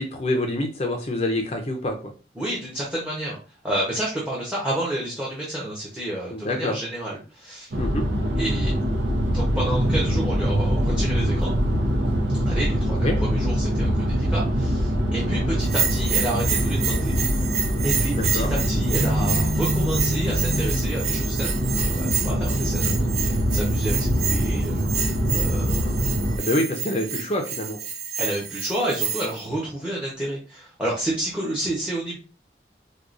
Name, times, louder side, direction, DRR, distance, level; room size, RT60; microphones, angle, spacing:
voice 1, 0.0-2.0 6.3-6.8 7.8-8.0 13.0-13.2 18.2-18.5 26.4-27.8, left 1 dB, 35° left, 3 dB, 0.5 m, -26 dB
voice 2, 2.4-3.4 3.6-7.7 8.3-8.7 9.3-11.6 12.5-17.2 17.8-26.2 28.2-32.2, right 1 dB, 5° right, -3 dB, 0.9 m, -30 dB
sound 1, 7.7-26.4, equal, 75° right, 0.7 m, -23 dB
Bell, 15.6-29.4, right 7 dB, 40° right, 0.5 m, -29 dB
4.7 x 2.3 x 2.5 m, 0.36 s
head